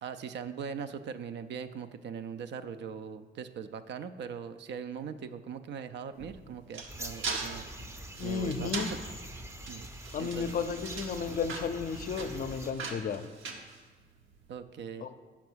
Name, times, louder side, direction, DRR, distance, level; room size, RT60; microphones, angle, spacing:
voice 1, 0.0-7.7 8.2-9.0 9.7-9.9 10.2-10.6 14.5-15.1, right 7 dB, 65° right, 10 dB, 0.4 m, -40 dB
sound 1, 6.1-14.4, right 4 dB, 80° right, 0.9 m, -41 dB
sound 2, 6.9-12.7, right 1 dB, 15° right, 0.6 m, -44 dB
voice 2, 8.2-8.9 10.1-13.2 15.0-15.1, left 6 dB, 45° left, 10 dB, 0.5 m, -33 dB
5.8 x 4.7 x 6.2 m, 1.4 s
cardioid pair, 90°, 20 cm